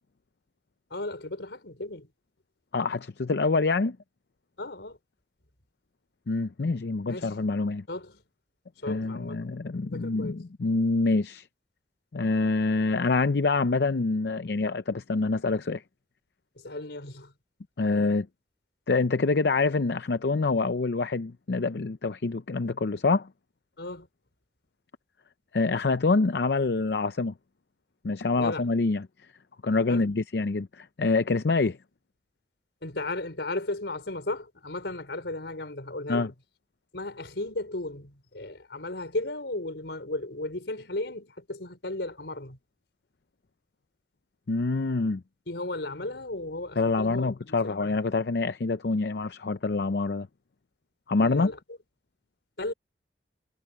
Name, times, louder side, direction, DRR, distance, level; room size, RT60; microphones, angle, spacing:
voice 1, 0.9-2.1 4.6-5.0 7.1-7.3 7.9-8.2 8.8-9.4 9.8-10.4 16.6-17.3 23.8-24.1 28.4-28.7 29.9-30.1 32.8-36.3 36.9-42.6 45.5-48.0 51.2-51.6 52.6-52.7, left 2 dB, 85° left, 4.5 m, -35 dB
voice 2, 2.7-4.0 6.3-7.8 8.9-11.5 12.1-15.8 17.8-18.3 18.9-23.3 25.5-27.3 28.0-29.1 29.6-31.8 36.1-36.3 44.5-45.2 46.8-50.3 51.1-51.5, left 3 dB, 70° left, 0.6 m, -26 dB
head